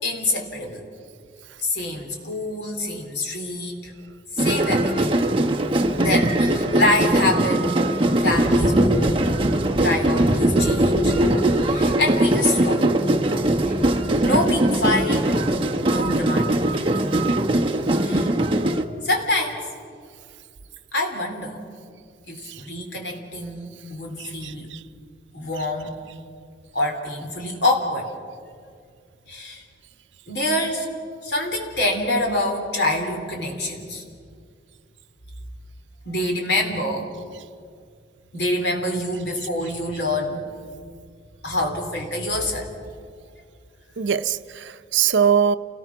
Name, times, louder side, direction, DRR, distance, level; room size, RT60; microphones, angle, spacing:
voice 1, 0.0-0.8 1.6-3.9 4.4-5.1 6.0-7.9 8.2-9.3 9.8-11.1 11.6-12.9 13.7-13.8 14.2-15.4 15.9-17.0 18.0-18.3 19.0-19.6 20.9-21.6 22.3-24.7 25.3-25.9 26.7-28.1 29.3-29.6 30.3-30.9 31.2-34.0 36.1-37.1 38.3-40.4 41.4-42.7, left 1 dB, 65° left, 2 dB, 3.5 m, -26 dB
sound 1, 4.4-18.8, right 1 dB, 30° right, 1.0 m, -20 dB
voice 2, 24.2-24.8 25.6-25.7 44.0-45.5, right 7 dB, 80° right, 12 dB, 0.7 m, -22 dB
28.5 x 18.5 x 6.1 m, 2.2 s
head